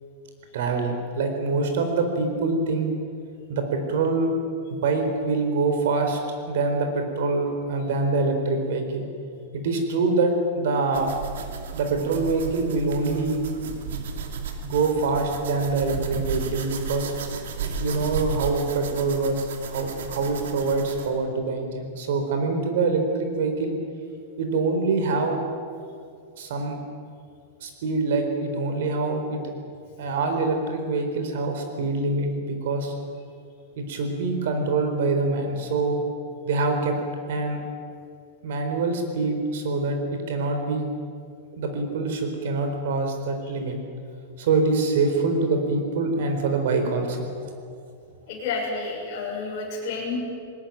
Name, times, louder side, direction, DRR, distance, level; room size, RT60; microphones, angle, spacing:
voice 1, 0.5-2.9 3.5-4.3 4.7-6.2 6.5-9.0 9.5-11.1 11.7-13.4 14.6-17.1 17.8-23.7 24.4-25.5 26.4-26.8 27.6-29.4 30.0-32.9 33.8-36.0 36.4-37.0 37.3-37.6 38.4-40.8 41.5-43.8 44.4-47.3, right 3 dB, 55° right, 5 dB, 4.2 m, -25 dB
sound 1, 10.9-21.1, right 5 dB, 80° right, 2.7 m, -34 dB
voice 2, 48.3-50.2, left 4 dB, 35° left, -4 dB, 6.8 m, -30 dB
20.0 x 19.5 x 9.2 m, 2.3 s
supercardioid pair, 180°, 0 cm